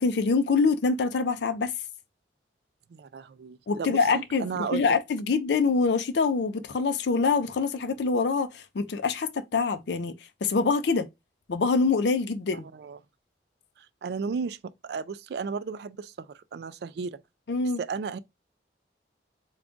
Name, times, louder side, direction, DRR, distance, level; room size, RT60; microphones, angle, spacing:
voice 1, 0.0-1.7 3.7-10.1 10.4-11.1 11.5-12.7 17.5-17.8, left 4 dB, 70° left, 0.4 m, -25 dB
voice 2, 2.9-4.8 12.5-13.0 13.8-17.2 17.8-18.2, right 5 dB, 60° right, 0.3 m, -34 dB
3.5 x 2.3 x 3.7 m
head